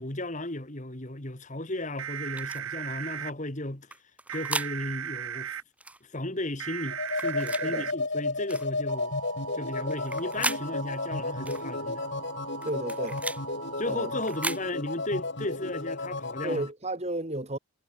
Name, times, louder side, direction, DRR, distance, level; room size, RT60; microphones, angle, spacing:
voice 1, 0.0-3.9 4.3-5.6 6.0-9.1 9.5-12.0 13.8-16.7, left 1 dB, 35° left, 2.3 m, -35 dB
sound 1, 2.0-3.3 4.3-5.6 6.6-7.9 8.9-14.5, right 8 dB, 90° right, 1.1 m, -38 dB
sound 2, 2.4-2.6 3.9-4.7 5.8-6.0 7.1-7.7 8.5-8.7 9.9-10.6 11.5-11.6 12.6-13.4 14.2-14.6, right 2 dB, 5° right, 1.5 m, -35 dB
sound 3, 6.9-16.7, left 3 dB, 55° left, 2.2 m, -33 dB
voice 2, 7.6-7.9 12.6-13.2 13.9-14.1 16.4-17.6, right 1 dB, 30° right, 2.5 m, -33 dB
head